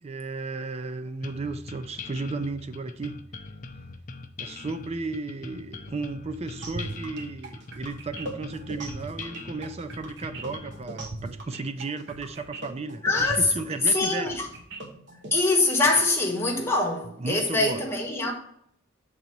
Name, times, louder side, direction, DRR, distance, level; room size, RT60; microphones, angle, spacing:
voice 1, 0.0-3.2 4.4-14.4 17.2-17.8, right 3 dB, 35° right, 0.4 m, -34 dB
sound 1, 1.2-10.8, left 3 dB, 40° left, 0.5 m, -41 dB
sound 2, 6.6-15.3, right 2 dB, 65° right, 1.2 m, -39 dB
voice 2, 13.0-13.4 13.9-14.5 15.3-18.3, left 3 dB, 15° left, 1.2 m, -24 dB
7.5 x 4.0 x 4.5 m
head